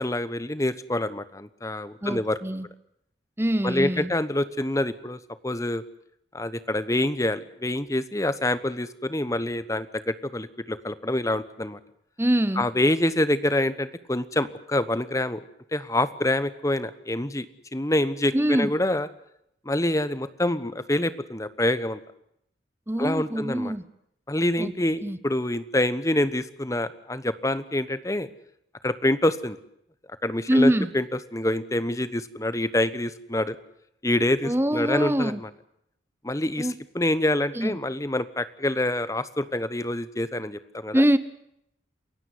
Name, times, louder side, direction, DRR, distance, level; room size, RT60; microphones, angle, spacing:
voice 1, 0.0-2.4 3.6-5.8 6.3-11.8 12.6-15.4 15.7-17.5 17.7-19.1 19.6-22.0 23.0-23.7 24.3-28.3 28.8-29.6 30.2-31.0 31.3-33.6 34.0-35.5 36.2-41.1, left 1 dB, 15° left, 1.1 m, -26 dB
voice 2, 2.0-2.7 3.4-4.1 12.2-12.7 18.3-18.7 22.9-23.8 24.6-24.7 25.0-25.2 30.5-30.9 34.4-35.4 36.6-36.7 37.6-37.8 40.9-41.2, right 1 dB, 15° right, 0.9 m, -24 dB
28.5 x 16.0 x 7.9 m
head